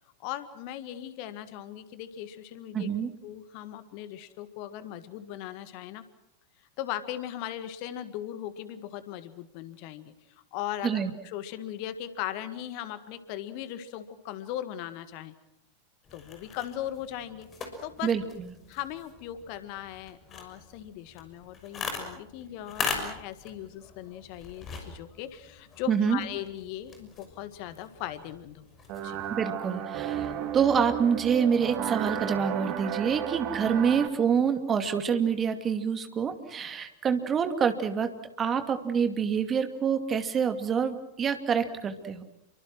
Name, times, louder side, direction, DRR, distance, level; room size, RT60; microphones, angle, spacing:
voice 1, 0.2-2.9 3.2-6.0 6.8-10.1 10.5-15.3 16.1-17.5 17.8-18.1 18.7-28.7 29.0-29.2, left 12 dB, 45° left, 12 dB, 1.8 m, -38 dB
voice 2, 2.7-3.1 10.8-11.1 18.0-18.5 25.9-26.2 29.3-38.1 38.4-42.2, right 7 dB, 25° right, 8 dB, 2.5 m, -27 dB
sound 1, 16.0-29.4, left 4 dB, 25° left, 6.2 m, -41 dB
sound 2, 28.9-34.1, right 10 dB, 40° right, 2.2 m, -33 dB
30.0 x 24.0 x 6.2 m, 0.84 s
figure-of-eight pair, 90°, 0 cm